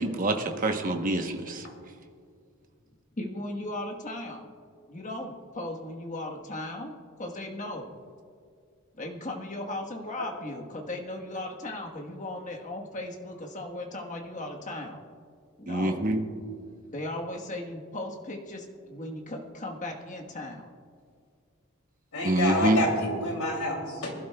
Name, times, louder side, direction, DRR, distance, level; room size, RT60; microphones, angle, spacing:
voice 1, 0.0-1.6 15.7-16.2 22.2-22.8, right 1 dB, 40° right, 5 dB, 0.9 m, -26 dB
voice 2, 3.2-4.5 4.9-6.9 7.2-7.9 9.0-15.0 15.6-16.0 16.9-20.7, left 1 dB, 35° left, 1 dB, 1.3 m, -37 dB
voice 3, 22.1-24.1, left 1 dB, 85° left, 1 dB, 2.7 m, -28 dB
22.5 x 12.0 x 2.3 m, 2.2 s
head